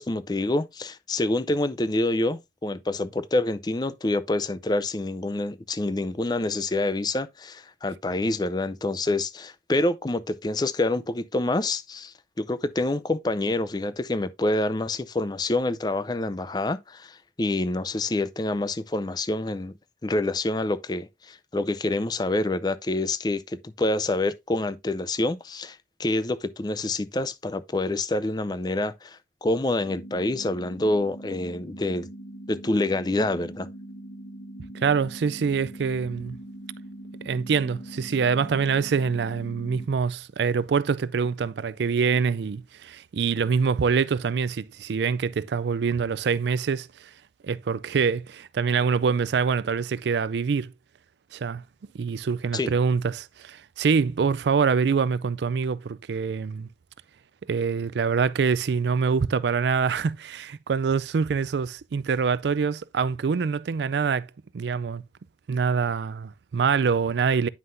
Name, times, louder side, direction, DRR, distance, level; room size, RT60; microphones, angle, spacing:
voice 1, 0.0-19.7 20.0-32.1 32.5-33.7 52.5-52.7, left 2 dB, 25° left, 0.5 m, -27 dB
sound 1, 29.8-39.9, right 1 dB, 75° left, 2.0 m, -42 dB
voice 2, 34.7-36.4 37.2-47.1 47.4-50.7 51.3-51.6 51.9-56.7 57.4-64.3 64.5-65.0 65.5-67.5, right 5 dB, 80° right, 0.4 m, -25 dB
9.5 x 5.7 x 2.6 m
head